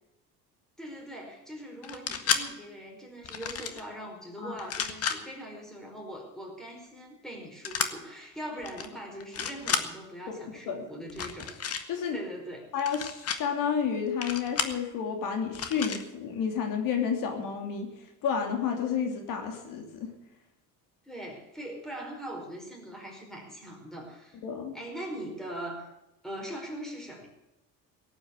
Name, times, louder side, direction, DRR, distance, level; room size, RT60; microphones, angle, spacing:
voice 1, 0.8-11.5 12.1-12.7 21.0-24.4 24.7-25.9 26.2-27.3, right 1 dB, ahead, 0 dB, 4.8 m, -41 dB
sound 1, 1.8-2.4 3.2-3.8 4.6-5.2 7.6-7.9 8.6-8.9 9.2-9.8 11.1-11.8 12.8-13.4 14.2-14.8 15.5-16.0, left 7 dB, 45° left, 1.7 m, -31 dB
voice 2, 10.3-10.8 11.9-12.2 12.7-17.9 18.2-20.1 24.4-24.7, left 7 dB, 70° left, 3 dB, 3.0 m, -31 dB
17.0 x 9.1 x 8.2 m, 0.93 s
cardioid pair, 125°, 34 cm